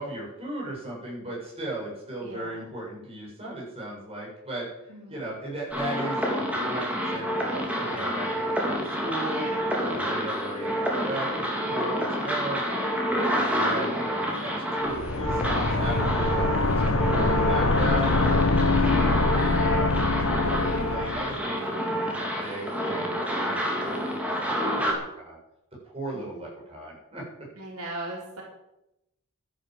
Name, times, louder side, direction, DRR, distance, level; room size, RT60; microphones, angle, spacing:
voice 1, 0.0-4.7 5.1-9.5 9.8-12.6 13.1-19.2 19.6-19.9 20.6-25.4 25.8-27.2, right 1 dB, 25° right, -4 dB, 7.7 m, -36 dB
voice 2, 2.2-2.7 4.9-5.2 26.1-26.4 27.6-28.4, right 1 dB, 80° right, -2 dB, 4.9 m, -39 dB
sound 1, 5.7-24.9, equal, 5° right, 3.2 m, -28 dB
sound 2, 14.9-21.3, left 2 dB, 70° left, 1.6 m, -24 dB
12.5 x 11.5 x 7.9 m, 0.88 s
head